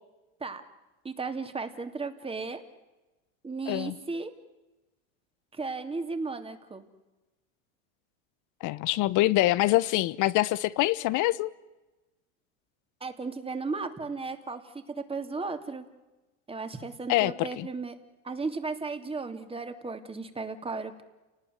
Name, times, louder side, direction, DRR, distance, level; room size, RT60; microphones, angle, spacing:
voice 1, 1.0-2.6 3.4-4.3 5.5-6.8 13.0-15.8 16.5-17.9 18.2-21.0, right 4 dB, 15° right, 3.0 m, -35 dB
voice 2, 8.6-11.5 17.1-17.7, left 17 dB, 55° left, 1.3 m, -25 dB
30.0 x 19.0 x 9.6 m
supercardioid pair, 105°, 36 cm